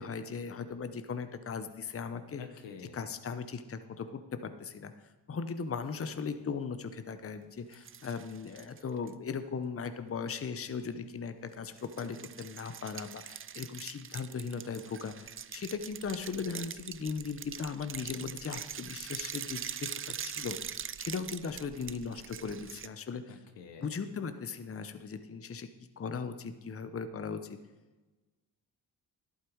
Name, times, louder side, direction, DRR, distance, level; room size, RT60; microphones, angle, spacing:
voice 1, 0.0-2.4 2.8-4.9 5.3-20.6 21.0-23.4 23.8-25.7 26.0-27.6, left 5 dB, 30° left, 10 dB, 0.8 m, -38 dB
voice 2, 2.4-3.0 23.3-23.9, left 6 dB, 85° left, 6 dB, 1.3 m, -48 dB
sound 1, 7.7-9.1 11.8-22.9, right 8 dB, 30° right, 0.4 m, -43 dB
11.5 x 8.6 x 4.6 m, 1.2 s
cardioid pair, 65°, 42 cm